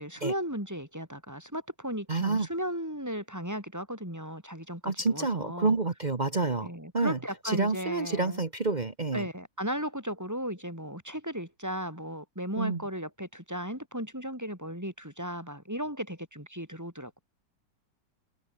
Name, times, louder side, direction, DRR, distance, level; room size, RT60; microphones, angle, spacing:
voice 1, 0.0-5.8 6.6-8.4 9.1-17.1, equal, 10° right, 5.8 m, -36 dB
voice 2, 2.1-2.5 4.8-7.2 7.4-9.3 12.6-12.8, right 3 dB, 30° right, 1.2 m, -28 dB
omnidirectional pair, 2.0 m